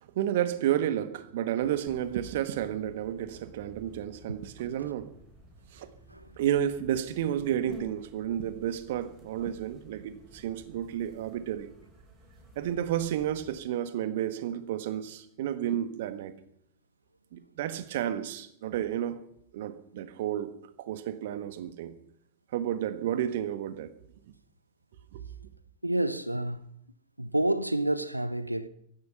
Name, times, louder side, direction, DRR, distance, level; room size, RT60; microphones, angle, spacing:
voice 1, 0.1-5.1 5.7-5.9 6.4-11.7 12.5-16.3 17.3-19.2 19.5-20.5 20.8-21.9 22.5-23.9 25.1-25.2, right 11 dB, 55° right, 1.5 m, -31 dB
sound 1, 1.6-13.6, right 1 dB, 15° right, 6.8 m, -53 dB
voice 2, 25.8-26.7 27.2-28.7, right 1 dB, 85° right, 0.8 m, -29 dB
17.0 x 14.5 x 5.7 m
figure-of-eight pair, 90°, 0 cm